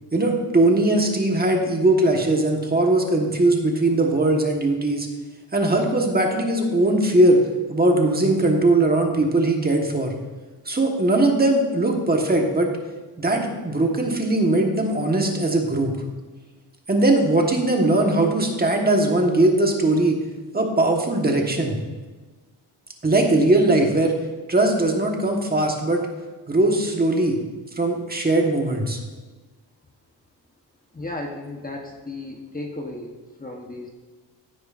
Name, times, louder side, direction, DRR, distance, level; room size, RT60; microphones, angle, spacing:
voice 1, 0.1-5.1 5.5-7.4 7.7-10.1 10.7-12.7 13.2-16.0 16.9-20.2 20.5-21.8 23.0-24.1 24.5-26.0 26.5-27.4 27.8-29.0, right 2 dB, 20° right, 1 dB, 1.3 m, -20 dB
voice 2, 30.9-33.9, left 2 dB, 20° left, 1 dB, 0.9 m, -34 dB
16.0 x 9.1 x 2.5 m, 1.3 s
wide cardioid pair, 145°, 43 cm